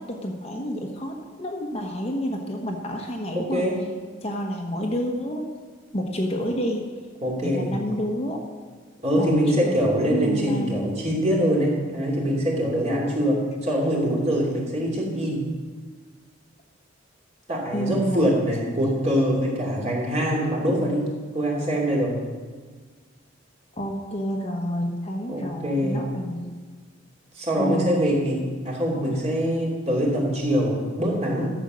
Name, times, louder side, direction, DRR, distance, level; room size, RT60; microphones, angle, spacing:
voice 1, 0.0-3.7 4.2-5.5 5.9-6.9 7.4-8.4 9.2-11.0 17.7-18.3 23.8-26.5 27.6-28.2 29.1-29.2, equal, 30° left, 1 dB, 1.2 m, -29 dB
voice 2, 3.3-3.7 7.2-7.7 9.0-15.4 17.5-21.0 21.3-22.1 25.3-26.0 27.3-28.4 28.6-31.5, equal, 35° right, -3 dB, 2.9 m, -24 dB
12.5 x 7.4 x 6.3 m, 1.5 s
head